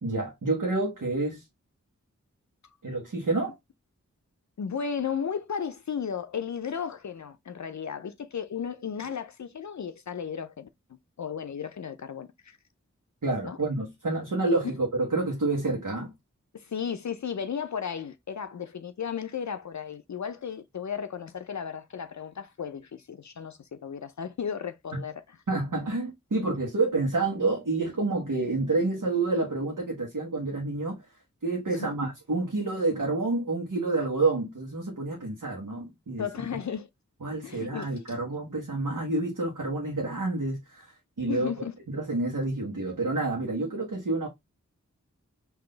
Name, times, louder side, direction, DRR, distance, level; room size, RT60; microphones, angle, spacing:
voice 1, 0.0-1.4 2.8-3.5 13.2-16.1 25.5-31.1 31.4-36.3 37.2-41.5 41.9-44.3, right 2 dB, 85° right, 1.2 m, -28 dB
voice 2, 4.6-10.7 11.2-12.6 13.4-13.6 16.5-25.4 31.7-31.9 36.2-36.9 37.4-38.0 41.3-41.7, left 7 dB, 65° left, 0.5 m, -34 dB
3.8 x 2.7 x 3.8 m
wide cardioid pair, 45°, 31 cm